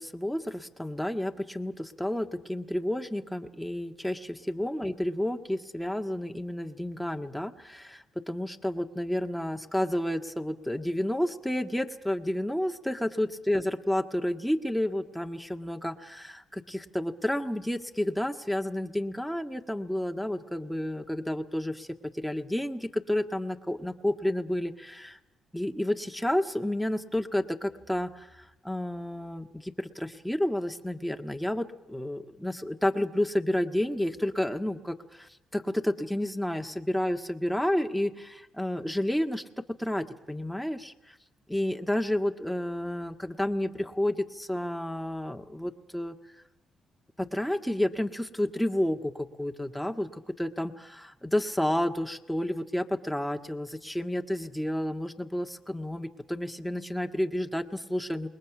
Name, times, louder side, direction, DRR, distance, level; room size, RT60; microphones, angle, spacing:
voice 1, 0.0-25.2 25.5-28.3 28.6-40.9 41.5-46.1 47.2-58.3, left 1 dB, ahead, 4 dB, 1.7 m, -30 dB
28.5 x 21.0 x 6.1 m, 0.95 s
cardioid pair, 90°, 0 cm